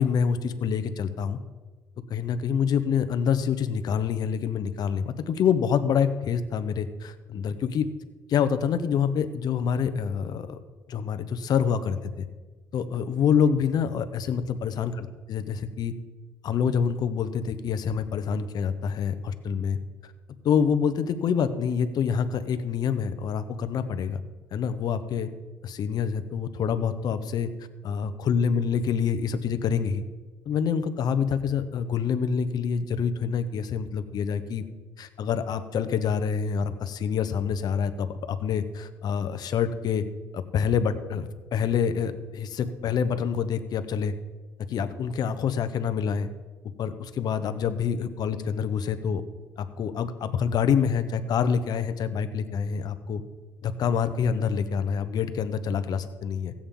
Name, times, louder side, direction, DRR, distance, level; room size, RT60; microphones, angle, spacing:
voice 1, 0.0-1.4 2.1-7.9 8.3-10.6 10.9-12.3 12.7-15.9 16.4-20.1 20.4-24.2 24.5-25.3 25.6-27.5 27.8-30.0 30.5-34.6 35.0-40.0 40.3-44.1 44.7-46.3 46.8-49.2 49.6-53.2 53.6-56.5, left 7 dB, 60° left, 11 dB, 0.9 m, -26 dB
16.0 x 8.7 x 3.8 m, 1.3 s
cardioid pair, 95°, 8 cm